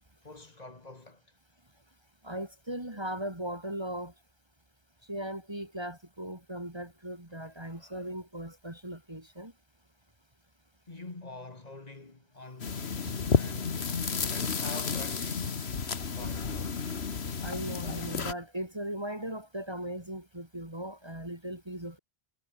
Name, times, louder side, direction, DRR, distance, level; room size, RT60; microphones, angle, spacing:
voice 1, 0.2-1.2 7.6-8.1 10.9-13.8 14.3-15.7 16.0-16.8, left 2 dB, 40° left, 1.9 m, -46 dB
voice 2, 2.2-4.1 5.1-9.5 13.4-13.6 17.4-22.0, right 1 dB, 25° right, 3.2 m, -38 dB
sound 1, 12.6-18.3, left 5 dB, 80° left, 1.8 m, -31 dB
omnidirectional pair, 1.1 m